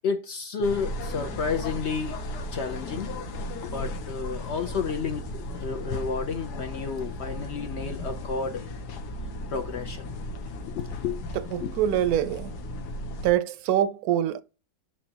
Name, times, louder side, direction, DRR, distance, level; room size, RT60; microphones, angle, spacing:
voice 1, 0.0-2.2 2.5-3.1 3.6-8.6 9.5-10.1 10.8-11.2 11.6-11.7, left 5 dB, 60° left, 0.7 m, -31 dB
sound 1, 0.6-13.3, left 1 dB, 85° left, 1.4 m, -35 dB
voice 2, 11.3-12.5 13.2-14.4, right 11 dB, 75° right, 1.0 m, -25 dB
7.1 x 5.2 x 2.8 m
omnidirectional pair, 1.7 m